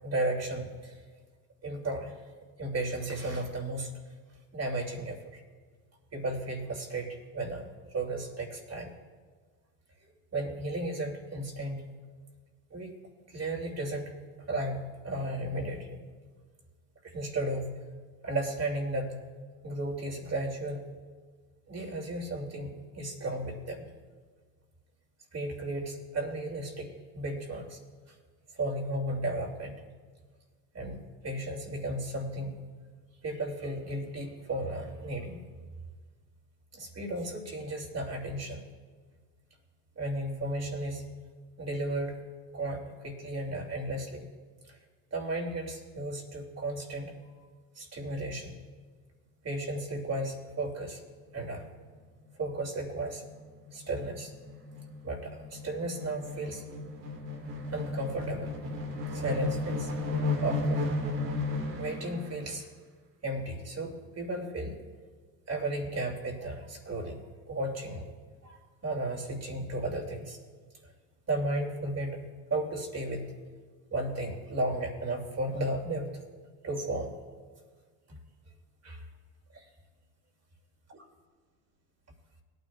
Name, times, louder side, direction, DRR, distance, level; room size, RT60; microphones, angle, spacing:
voice 1, 0.0-1.0 1.6-2.2 2.6-4.0 4.5-5.4 6.1-8.9 10.3-11.8 12.7-12.9 13.3-14.1 14.5-16.0 17.0-17.8 18.2-19.2 19.6-20.8 21.7-23.9 25.3-27.8 28.5-29.8 30.7-32.6 33.2-35.4 36.7-38.6 40.0-41.0 41.6-42.1 42.5-44.3 44.7-44.8 45.1-47.1 47.7-48.5 49.4-51.0 51.3-51.7 52.4-53.2 53.7-54.3 55.0-56.6 57.7-58.6 59.1-59.9 60.4-60.8 61.8-62.7 63.2-64.8 65.5-67.2 67.5-68.1 68.4-70.4 71.3-72.2 72.5-73.3 73.9-76.2 76.6-77.1 78.1-78.2 78.8-79.0 79.5-79.6 80.9-81.0, right 1 dB, 30° right, 0 dB, 2.8 m, -34 dB
sound 1, 51.8-51.9 52.2-52.3 52.6-62.2, left 2 dB, 80° right, 2.3 m, -34 dB
21.0 x 9.4 x 2.4 m, 1.5 s
hypercardioid pair, 60°, 48 cm